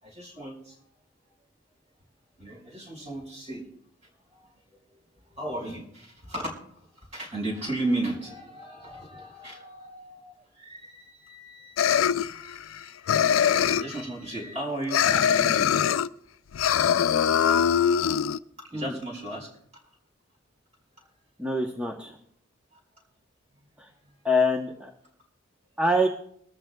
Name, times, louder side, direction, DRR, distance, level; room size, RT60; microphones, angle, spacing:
voice 1, 0.0-0.8 2.4-3.6 4.9-5.0 5.4-6.5 7.1-15.7 18.7-19.5, right 1 dB, 35° right, -1 dB, 4.6 m, -35 dB
sound 1, 11.8-12.8 13.1-14.0 14.9-16.1 16.5-18.4, left 8 dB, 80° left, 0.4 m, -22 dB
voice 2, 21.4-22.2 23.8-23.9 24.2-24.9 25.8-26.1, left 1 dB, 5° right, 0 dB, 0.8 m, -25 dB
22.5 x 14.0 x 2.3 m, 0.69 s
head